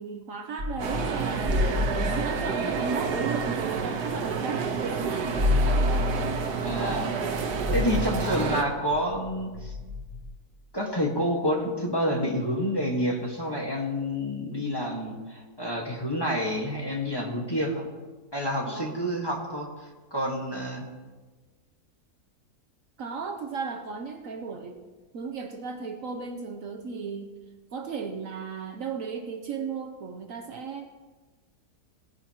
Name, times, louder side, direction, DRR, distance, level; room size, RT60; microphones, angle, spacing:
voice 1, 0.0-1.6 2.1-5.0 5.3-6.0 6.8-7.6 18.7-19.0 23.0-24.8 25.1-27.3 27.7-30.9, right 5 dB, 60° right, 4 dB, 1.1 m, -35 dB
sound 1, 0.6-4.5 4.7-4.8 5.1-10.2, left 2 dB, 35° right, 4.7 m, -30 dB
sound 2, 0.8-8.6, right 6 dB, 90° right, 1.6 m, -29 dB
voice 2, 6.6-7.1 7.7-9.7 10.7-17.9 18.3-20.8, equal, 15° left, -2 dB, 1.5 m, -29 dB
18.0 x 10.5 x 2.9 m, 1.3 s
omnidirectional pair, 1.7 m